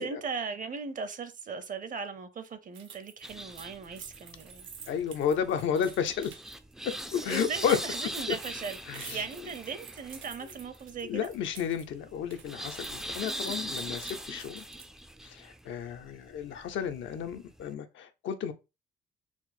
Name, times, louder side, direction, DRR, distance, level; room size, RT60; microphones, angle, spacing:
voice 1, 0.0-4.7 7.2-11.3 13.7-13.9, right 5 dB, 40° right, 0.6 m, -38 dB
sound 1, 2.7-11.9 12.1-15.0, right 7 dB, 75° right, 0.8 m, -49 dB
Wavy Train, 3.2-17.7, right 1 dB, ahead, 0.3 m, -42 dB
voice 2, 4.9-6.3 6.8-7.8 8.3-8.4 8.9-9.2 11.0-14.6 15.2-18.5, left 8 dB, 75° left, 0.6 m, -32 dB
4.4 x 2.0 x 4.1 m
cardioid pair, 90°, 20 cm